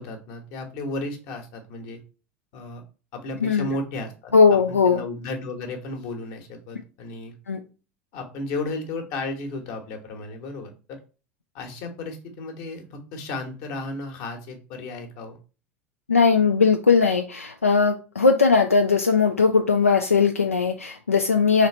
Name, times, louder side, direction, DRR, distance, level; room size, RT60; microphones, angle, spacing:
voice 1, 0.0-2.0 2.5-2.8 3.1-7.3 8.1-11.0 11.5-15.4, left 2 dB, 50° left, 4 dB, 1.1 m, -34 dB
voice 2, 4.3-5.0 7.5-7.6 16.1-21.7, left 5 dB, 85° left, 5 dB, 0.4 m, -19 dB
3.8 x 3.2 x 4.1 m, 0.34 s
figure-of-eight pair, 80°, 7 cm